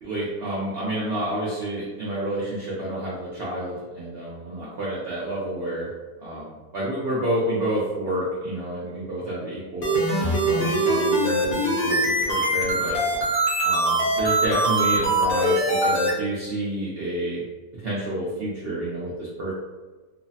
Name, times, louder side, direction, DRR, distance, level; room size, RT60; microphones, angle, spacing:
voice 1, 0.0-5.9 6.2-10.0 10.5-13.0 13.6-17.4 17.7-19.5, right 1 dB, 65° right, -7 dB, 0.6 m, -29 dB
sound 1, 9.8-16.1, right 1 dB, 45° left, 0.8 m, -22 dB
3.1 x 2.0 x 2.6 m, 1.3 s
omnidirectional pair, 1.7 m